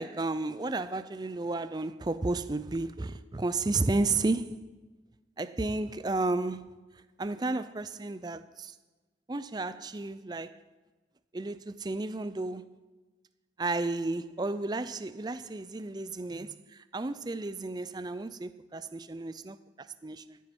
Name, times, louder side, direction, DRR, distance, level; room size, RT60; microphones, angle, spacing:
voice 1, 0.0-4.6 5.4-6.7 7.2-8.7 9.3-10.6 11.3-12.7 13.6-20.4, right 2 dB, 25° right, 0.4 m, -32 dB
14.0 x 9.3 x 6.1 m
head